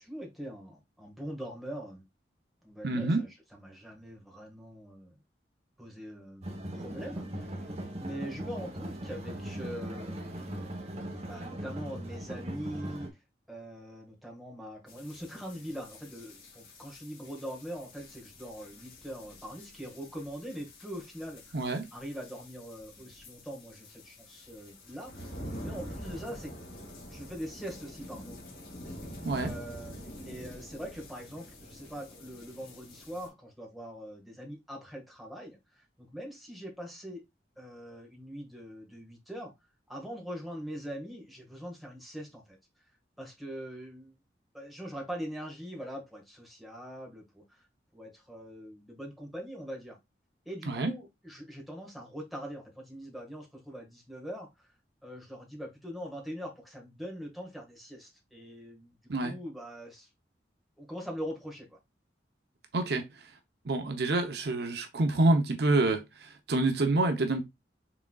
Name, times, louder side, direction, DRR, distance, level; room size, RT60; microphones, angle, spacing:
voice 1, 0.0-2.0 2.6-5.2 5.8-6.5 6.7-7.7 8.0-10.5 11.2-13.1 13.5-21.6 21.9-25.3 25.6-26.6 27.1-28.5 29.3-37.2 37.6-39.5 39.9-42.6 43.2-44.2 44.5-47.7 47.9-50.0 50.4-54.7 55.0-60.1 60.8-61.8, equal, ahead, 1.6 m, -42 dB
voice 2, 2.8-3.2 21.5-21.9 29.2-29.5 50.7-50.9 59.1-59.3 62.7-63.0 63.6-67.4, right 2 dB, 60° right, 0.7 m, -27 dB
sound 1, 6.4-13.1, right 1 dB, 35° right, 1.0 m, -39 dB
sound 2, 14.9-33.3, equal, 55° left, 2.1 m, -47 dB
6.0 x 3.6 x 2.3 m
head